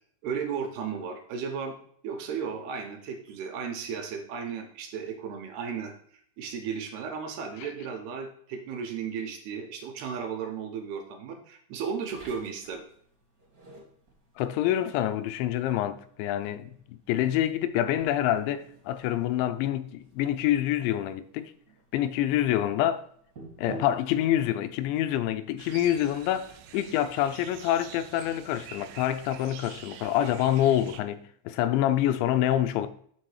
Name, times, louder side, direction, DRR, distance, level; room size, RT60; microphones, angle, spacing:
voice 1, 0.2-1.8 2.0-5.9 6.4-12.8, right 6 dB, 75° right, 2.7 m, -35 dB
sound 1, 12.1-26.8, right 2 dB, 50° right, 1.0 m, -52 dB
voice 2, 14.4-21.5 21.9-23.0 23.6-32.9, left 12 dB, 85° left, 2.8 m, -27 dB
sound 2, 25.6-31.0, right 9 dB, 90° right, 2.1 m, -47 dB
7.6 x 3.8 x 6.5 m
omnidirectional pair, 5.2 m